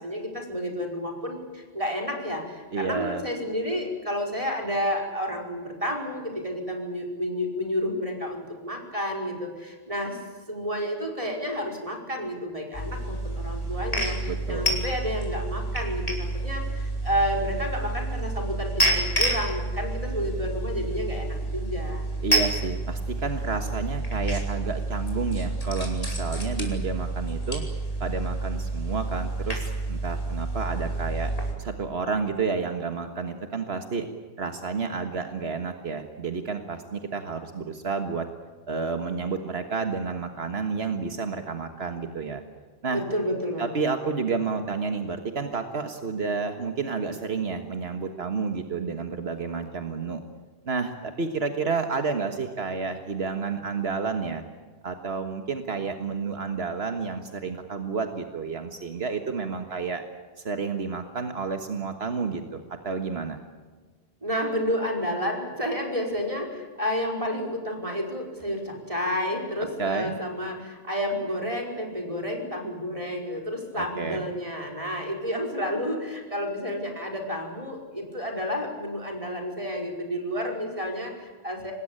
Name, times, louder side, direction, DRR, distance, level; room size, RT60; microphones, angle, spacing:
voice 1, 0.0-10.2 10.5-22.1 42.9-43.9 64.2-81.7, equal, 35° right, 1 dB, 5.4 m, -30 dB
voice 2, 2.7-3.2 14.3-14.8 22.2-27.6 28.0-31.3 31.6-34.1 34.4-38.3 38.7-42.4 42.8-43.0 43.6-50.2 50.6-54.4 54.8-60.0 60.4-63.4 69.8-70.1 73.7-74.2, right 5 dB, 80° right, 6 dB, 1.8 m, -30 dB
sound 1, 12.7-31.5, right 2 dB, 35° left, 4.9 m, -29 dB
26.0 x 20.0 x 8.9 m, 1.4 s
omnidirectional pair, 1.0 m